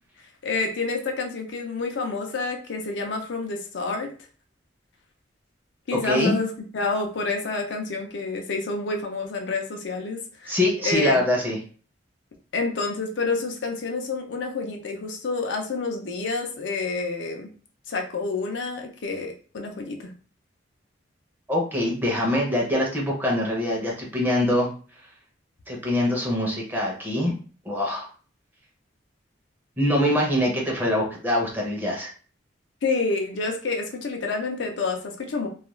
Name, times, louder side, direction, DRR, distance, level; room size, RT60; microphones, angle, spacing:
voice 1, 0.4-4.1 5.9-10.6 10.8-11.2 12.5-17.5 17.9-20.1 32.8-35.5, left 3 dB, 70° left, 3 dB, 0.5 m, -28 dB
voice 2, 6.0-6.3 10.5-11.6 21.5-24.7 25.7-27.3 27.6-28.1 29.8-32.1, left 1 dB, 10° right, -2 dB, 0.6 m, -24 dB
2.3 x 2.2 x 3.0 m, 0.39 s
head